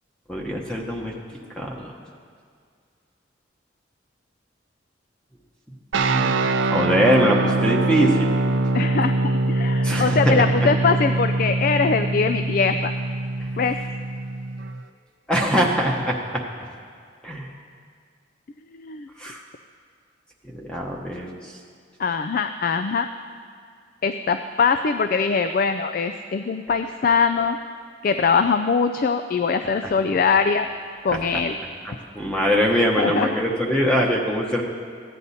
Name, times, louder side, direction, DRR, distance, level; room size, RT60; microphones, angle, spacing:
voice 1, 0.3-1.1 1.6-1.9 6.0-6.4 6.7-8.3 9.8-10.7 15.3-16.4 17.2-17.5 19.2-19.4 20.5-21.4 29.8-29.9 31.1-31.2 31.8-34.6, equal, 5° left, -1 dB, 0.9 m, -22 dB
sound 1, 5.9-14.8, right 2 dB, 85° right, 0.6 m, -23 dB
voice 2, 8.7-12.9 13.6-13.8 18.7-19.1 22.0-23.1 24.0-27.6 28.0-30.7 31.0-31.6 33.0-33.4, left 5 dB, 50° left, 9 dB, 0.3 m, -22 dB
14.5 x 9.9 x 4.1 m, 2.2 s
head